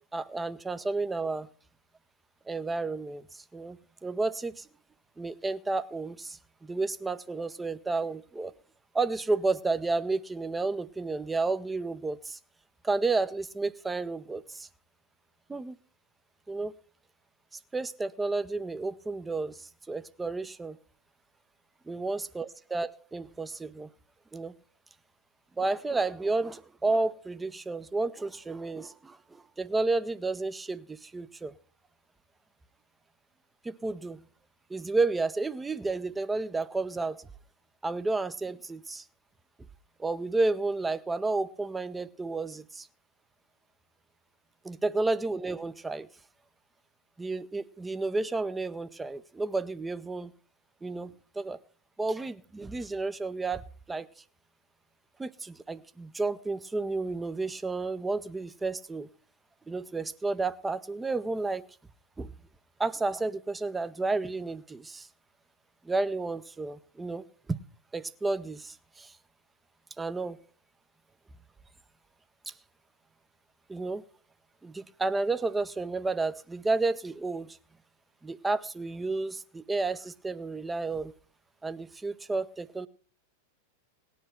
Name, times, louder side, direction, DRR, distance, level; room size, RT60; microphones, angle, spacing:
voice 1, 0.1-1.5 2.5-4.7 5.2-8.5 8.9-12.4 12.8-14.7 15.5-15.8 16.5-16.7 17.7-20.8 21.9-23.9 24.3-24.5 25.6-31.5 33.6-34.2 34.7-37.3 37.8-39.0 40.0-42.9 44.6-46.1 47.2-50.3 50.8-51.6 52.0-53.6 53.9-54.1 55.2-59.1 59.7-61.6 62.2-62.3 62.8-65.1 65.8-67.6 67.9-69.1 70.0-70.4 72.5-72.6 73.7-74.0 74.6-77.6 78.2-81.1 81.6-82.9, right 3 dB, 10° right, 14 dB, 0.7 m, -31 dB
18.5 x 10.0 x 4.5 m, 0.42 s
figure-of-eight pair, 90°, 0 cm